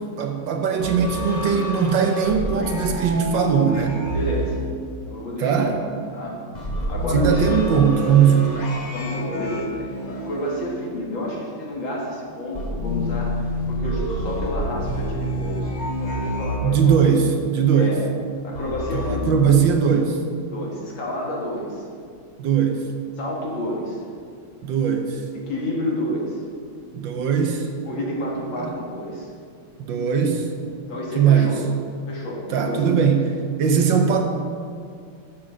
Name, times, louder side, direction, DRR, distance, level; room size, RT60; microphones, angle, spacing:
voice 1, 0.0-4.1 5.4-5.7 7.1-8.7 16.6-18.0 18.9-20.2 22.4-22.8 24.6-25.2 26.9-27.7 28.6-28.7 29.8-30.5 31.1-31.5 32.5-33.3 33.6-34.3, right 7 dB, 70° right, 4 dB, 1.5 m, -19 dB
sound 1, 0.8-5.4 6.5-11.3 12.6-17.2 18.6-19.2, equal, 30° left, 0.8 m, -28 dB
voice 2, 4.1-4.6 5.0-6.4 6.9-7.6 8.9-15.7 16.0-17.0 17.8-18.0 18.4-19.5 20.5-21.8 23.2-24.0 25.5-26.4 27.8-29.3 30.9-31.6 32.1-32.8, left 1 dB, 70° left, -3 dB, 2.5 m, -30 dB
7.4 x 7.3 x 6.3 m, 2.2 s
omnidirectional pair, 2.2 m